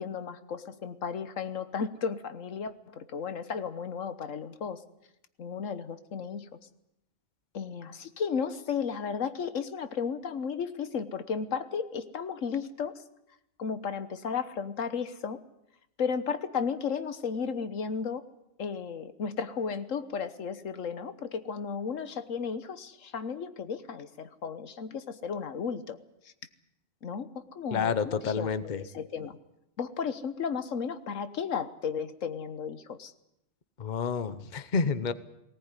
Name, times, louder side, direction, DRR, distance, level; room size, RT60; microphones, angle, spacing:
voice 1, 0.0-4.8 5.4-6.5 7.5-13.0 13.6-15.4 16.0-18.2 18.6-26.0 27.0-29.4 29.8-33.1, left 6 dB, 80° left, 12 dB, 1.5 m, -34 dB
voice 2, 27.7-28.8 33.8-35.1, left 5 dB, 40° left, 14 dB, 1.0 m, -29 dB
19.0 x 18.0 x 9.8 m, 0.83 s
omnidirectional pair, 1.3 m